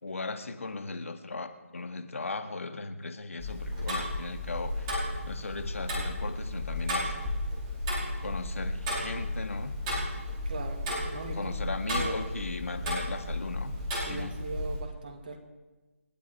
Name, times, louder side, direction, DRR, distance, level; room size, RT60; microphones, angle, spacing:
voice 1, 0.0-7.1 8.2-9.8 11.3-13.7 14.1-14.3, left 3 dB, 65° left, 8 dB, 1.8 m, -37 dB
Tick-tock, 3.4-14.8, left 1 dB, 20° right, 4.6 m, -33 dB
voice 2, 10.4-12.2 14.1-15.4, right 3 dB, 35° right, 4 dB, 2.3 m, -40 dB
28.0 x 9.4 x 4.7 m, 1.2 s
figure-of-eight pair, 160°, 8 cm